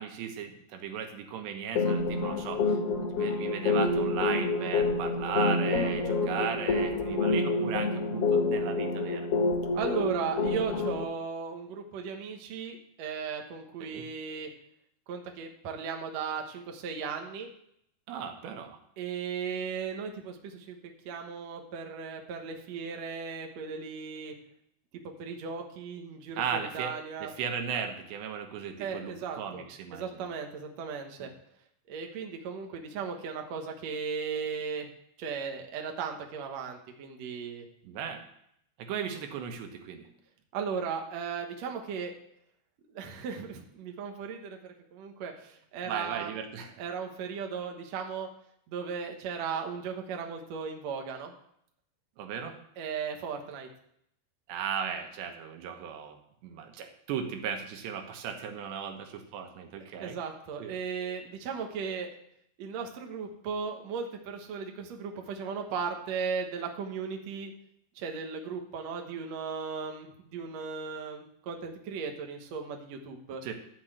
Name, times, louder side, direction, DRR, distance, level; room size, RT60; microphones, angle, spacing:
voice 1, 0.0-2.8 3.1-9.3 13.8-14.0 18.1-18.8 26.4-27.0 27.2-30.2 31.1-31.3 37.8-38.2 38.8-40.1 45.9-46.7 52.2-52.6 54.5-56.2 56.4-60.2 60.6-60.8 73.4-73.5, right 7 dB, 90° right, 5 dB, 3.4 m, -36 dB
sound 1, 1.7-11.0, left 3 dB, 75° left, 1.4 m, -28 dB
voice 2, 9.7-14.5 15.1-17.5 19.0-24.3 25.2-27.3 28.8-29.6 29.9-31.3 31.9-34.9 35.2-37.7 40.5-42.1 42.9-46.3 46.8-48.3 48.7-51.3 52.8-53.7 60.0-62.2 62.6-67.5 68.0-73.4, right 6 dB, 65° right, 3 dB, 1.7 m, -36 dB
12.0 x 5.4 x 7.7 m, 0.72 s
omnidirectional pair, 4.8 m